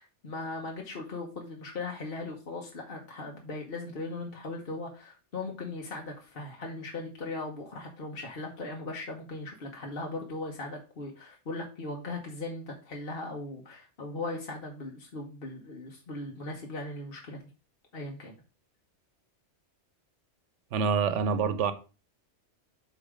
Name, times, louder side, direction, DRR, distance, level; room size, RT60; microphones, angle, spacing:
voice 1, 0.0-17.4 17.9-18.4, left 2 dB, 50° left, 1.3 m, -38 dB
voice 2, 20.7-21.7, right 6 dB, 85° right, 1.0 m, -26 dB
8.1 x 3.1 x 5.0 m
omnidirectional pair, 1.2 m